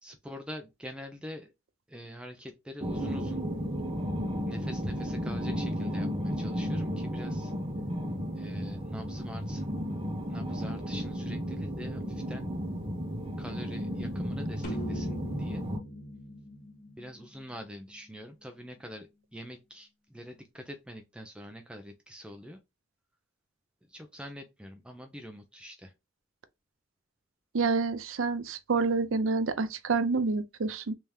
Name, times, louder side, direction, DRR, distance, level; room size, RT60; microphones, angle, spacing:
voice 1, 0.0-1.5 1.9-3.4 4.5-7.5 8.3-9.7 10.3-12.5 13.4-15.6 17.0-22.6 23.9-25.9, equal, 5° right, 0.5 m, -45 dB
sound 1, 2.8-15.8, equal, 25° right, 0.9 m, -33 dB
sound 2, 14.6-18.1, equal, 50° left, 1.5 m, -40 dB
voice 2, 27.5-30.9, right 4 dB, 90° right, 0.6 m, -28 dB
3.5 x 2.8 x 3.3 m
head